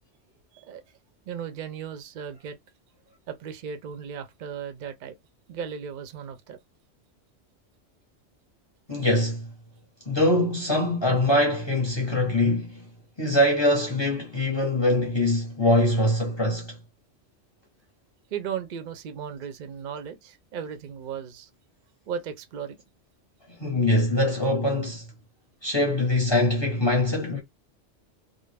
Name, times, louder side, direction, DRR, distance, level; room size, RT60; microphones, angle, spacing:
voice 1, 1.3-2.6 3.3-5.1 5.5-6.6 18.3-21.5 22.1-22.8, right 7 dB, 55° right, 0.5 m, -36 dB
voice 2, 8.9-9.5 10.1-12.8 13.2-16.8 23.6-25.0 25.6-27.4, left 1 dB, 25° left, 0.7 m, -23 dB
2.4 x 2.0 x 3.2 m
omnidirectional pair, 1.2 m